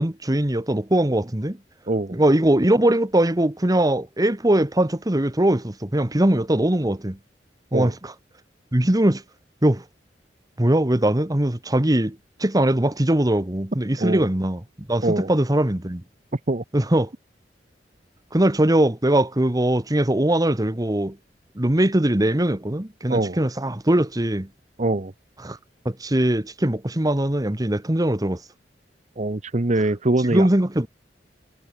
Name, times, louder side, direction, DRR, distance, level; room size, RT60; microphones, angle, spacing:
voice 1, 0.0-1.6 2.1-7.2 7.7-8.1 8.7-9.2 9.6-9.8 10.6-14.6 14.9-16.0 16.7-17.1 18.3-21.2 21.6-24.5 25.4-25.6 25.8-28.4 30.3-30.9, right 1 dB, 20° right, 1.3 m, -21 dB
voice 2, 1.9-2.2 7.7-7.9 14.0-14.3 15.0-15.3 16.5-16.6 23.1-23.4 24.8-25.1 29.2-30.5, right 2 dB, 45° right, 1.0 m, -23 dB
head